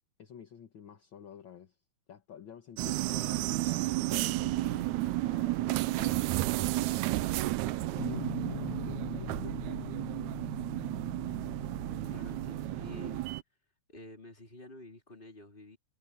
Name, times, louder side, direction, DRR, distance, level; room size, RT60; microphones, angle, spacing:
voice 1, 0.2-1.8 2.1-9.9 11.9-12.4, left 8 dB, 50° left, 1.7 m, -51 dB
sound 1, 2.8-13.4, right 18 dB, 80° right, 1.8 m, -32 dB
voice 2, 5.9-6.3 12.0-13.2 13.9-15.8, left 2 dB, 15° left, 4.2 m, -49 dB
Guitar, 8.0-13.2, left 25 dB, 85° left, 2.2 m, -43 dB
omnidirectional pair, 3.8 m